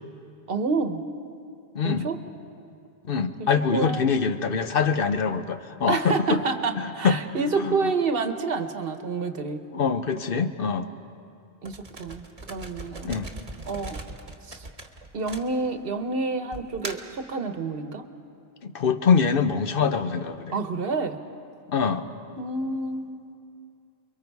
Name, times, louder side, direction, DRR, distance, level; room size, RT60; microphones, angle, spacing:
voice 1, 0.5-1.0 1.8-2.2 3.4-4.1 5.9-9.6 11.6-12.2 12.5-13.1 13.7-14.0 14.5-14.6 15.1-18.0 20.5-21.2 22.4-23.2, right 4 dB, 65° right, 8 dB, 1.3 m, -28 dB
voice 2, 1.7-2.1 3.1-6.4 7.0-7.2 7.6-7.7 9.7-10.9 13.0-13.3 18.6-20.5 21.7-22.0, left 6 dB, 65° left, 9 dB, 1.0 m, -24 dB
sound 1, 11.6-16.0 16.5-17.2, right 2 dB, 40° right, 1.4 m, -39 dB
29.5 x 23.0 x 4.7 m, 2.5 s
omnidirectional pair, 1.0 m